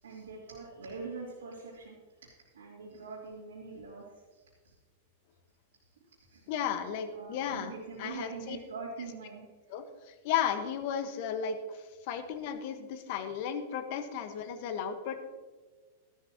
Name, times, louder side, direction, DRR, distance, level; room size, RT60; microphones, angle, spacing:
voice 1, 0.0-1.9 2.5-4.1 4.3-4.7 6.3-6.5 6.8-9.5, right 4 dB, 90° right, -7 dB, 2.9 m, -43 dB
voice 2, 6.5-7.7 8.0-8.6 9.7-11.6 12.1-15.2, left 8 dB, 60° left, 8 dB, 1.4 m, -34 dB
13.5 x 12.0 x 3.0 m, 1.4 s
hypercardioid pair, 110°, 0 cm